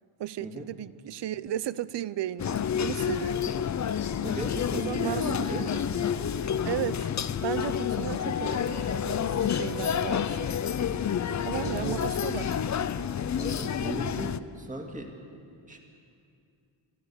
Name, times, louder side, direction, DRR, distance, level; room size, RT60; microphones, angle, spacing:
voice 1, 0.2-3.5 4.7-5.8 6.6-7.1 7.4-10.5 11.4-12.6, right 12 dB, 60° right, 0.6 m, -35 dB
sound 1, 2.4-14.4, left 8 dB, 35° left, 0.5 m, -29 dB
voice 2, 4.2-5.9 11.6-12.0 13.4-15.1 15.7-15.8, right 2 dB, 15° right, 2.1 m, -37 dB
29.5 x 13.0 x 7.0 m
wide cardioid pair, 130°, 48 cm